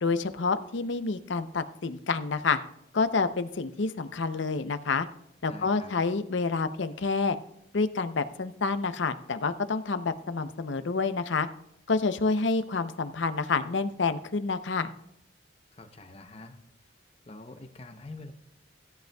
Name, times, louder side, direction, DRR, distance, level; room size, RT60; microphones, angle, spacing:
voice 1, 0.0-2.6 2.9-5.1 5.4-7.4 7.7-11.5 11.9-14.9, left 4 dB, 70° left, 11 dB, 0.6 m, -28 dB
voice 2, 5.5-5.9 15.7-16.6 17.2-18.3, left 2 dB, 30° left, 7 dB, 0.7 m, -45 dB
16.5 x 10.5 x 2.3 m, 0.79 s
head